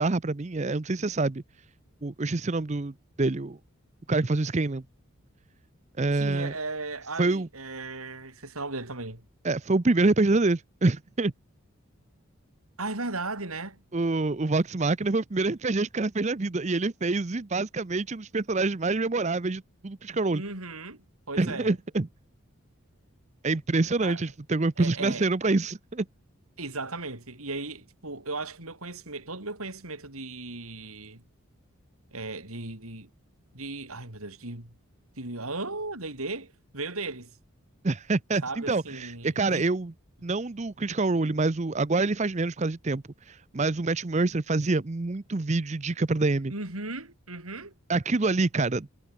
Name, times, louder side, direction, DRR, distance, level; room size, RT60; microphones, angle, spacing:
voice 1, 0.0-1.4 2.0-2.9 3.2-3.6 4.1-4.8 6.0-6.5 7.2-7.5 9.4-11.3 13.9-20.4 21.4-22.1 23.4-26.1 37.8-39.9 40.2-46.5 47.9-48.9, right 3 dB, 30° right, 0.6 m, -26 dB
voice 2, 6.1-9.2 12.8-13.8 20.3-21.7 24.0-24.2 24.8-25.3 26.6-31.2 32.1-33.1 33.5-34.7 35.2-37.3 38.4-39.7 46.5-47.7, right 3 dB, 80° right, 5.9 m, -36 dB
head